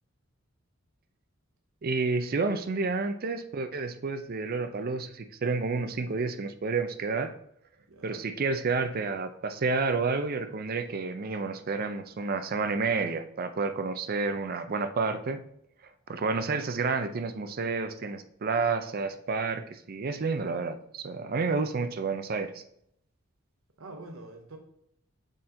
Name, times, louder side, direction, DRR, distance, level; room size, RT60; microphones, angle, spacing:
voice 1, 1.8-7.3 8.0-15.4 16.1-22.6, right 4 dB, 45° right, 10 dB, 0.5 m, -30 dB
voice 2, 7.8-8.3 23.8-24.6, right 2 dB, 80° right, 4 dB, 0.7 m, -45 dB
6.4 x 4.3 x 3.8 m, 0.71 s
head